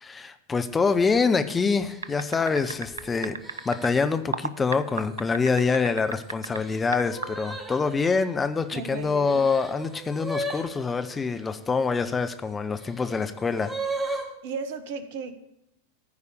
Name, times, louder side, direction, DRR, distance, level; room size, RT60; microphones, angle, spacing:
voice 1, 0.0-3.4 3.6-13.7, left 4 dB, 15° left, 9 dB, 0.6 m, -25 dB
sound 1, 0.9-1.2 1.8-4.2 4.8-5.2 5.6-11.5 12.2-14.3, right 1 dB, 10° right, 1.8 m, -37 dB
sound 2, 2.0-3.9 4.3-6.6 6.9-7.3, right 5 dB, 70° right, 0.5 m, -32 dB
voice 2, 8.7-9.4 14.4-15.4, right 5 dB, 50° right, 11 dB, 1.1 m, -35 dB
14.5 x 4.9 x 6.6 m, 0.82 s
figure-of-eight pair, 90°, 0 cm